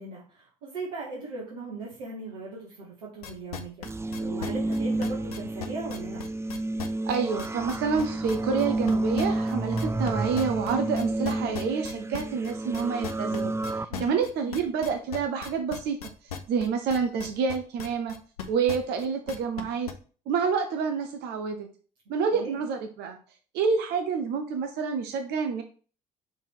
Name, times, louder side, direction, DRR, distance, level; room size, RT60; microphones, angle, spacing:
voice 1, 0.0-3.9 4.2-6.2 13.9-14.2 22.3-22.6, right 3 dB, 85° right, -5 dB, 1.7 m, -38 dB
sound 1, 3.2-10.1 10.3-19.9, left 7 dB, 90° left, 0.7 m, -38 dB
sound 2, 3.8-13.9, right 2 dB, 15° right, 0.4 m, -30 dB
voice 2, 7.0-13.5 14.0-16.0 16.5-18.1 18.5-19.9 20.3-21.7 22.1-23.2 23.5-25.6, right 5 dB, 65° right, 5 dB, 0.9 m, -28 dB
5.6 x 3.6 x 4.6 m, 0.39 s
hypercardioid pair, 55°, 19 cm